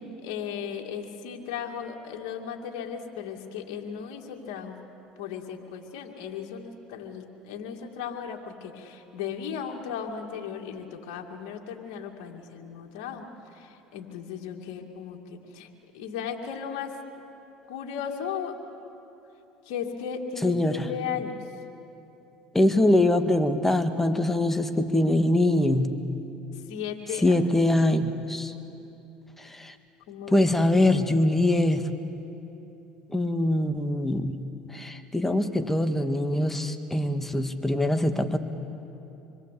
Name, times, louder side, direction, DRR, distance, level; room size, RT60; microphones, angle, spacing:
voice 1, 0.2-4.7 5.2-13.3 13.5-15.7 15.9-16.9 17.7-18.5 19.6-21.4 26.7-27.4 30.1-30.4, left 7 dB, 75° left, 2 dB, 2.4 m, -36 dB
voice 2, 20.4-20.9 22.5-25.9 27.2-28.5 29.4-29.7 30.3-31.9 33.1-34.4 34.7-38.4, left 1 dB, 10° left, 8 dB, 1.8 m, -23 dB
26.5 x 22.0 x 8.4 m, 2.9 s
supercardioid pair, 85°, 3 cm